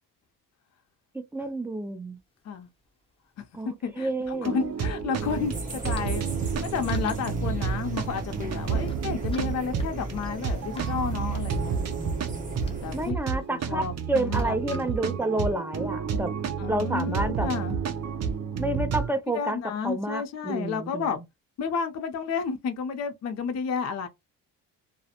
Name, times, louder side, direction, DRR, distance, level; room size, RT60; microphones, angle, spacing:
voice 1, 1.3-2.2 3.5-4.5 12.9-16.3 16.7-17.5 18.6-19.6 19.8-21.1, right 2 dB, 5° right, 0.3 m, -29 dB
sound 1, 2.2-2.3 2.5-2.6 4.1-15.3, left 1 dB, 15° left, 0.8 m, -48 dB
voice 2, 3.6-6.3 6.6-11.8 12.8-15.0 16.6-17.8 19.3-21.2 21.6-24.1, left 6 dB, 50° left, 0.5 m, -31 dB
sound 2, 4.3-19.1, right 6 dB, 50° right, 0.6 m, -31 dB
sound 3, 5.2-13.1, right 1 dB, 20° right, 1.0 m, -37 dB
2.4 x 2.0 x 2.8 m
cardioid pair, 110°, 35 cm